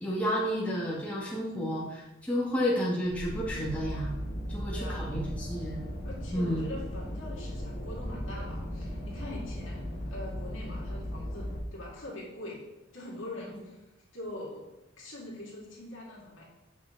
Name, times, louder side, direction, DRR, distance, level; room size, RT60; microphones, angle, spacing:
voice 1, 0.0-4.1 4.5-5.8 6.3-6.6, equal, 5° left, -7 dB, 1.7 m, -31 dB
sound 1, 3.0-11.6, equal, 40° left, 1.9 m, -37 dB
voice 2, 4.7-5.1 6.0-12.6 12.9-13.8 14.1-14.7 15.0-16.4, left 1 dB, 65° left, -4 dB, 2.6 m, -43 dB
8.1 x 5.9 x 3.9 m, 0.95 s
head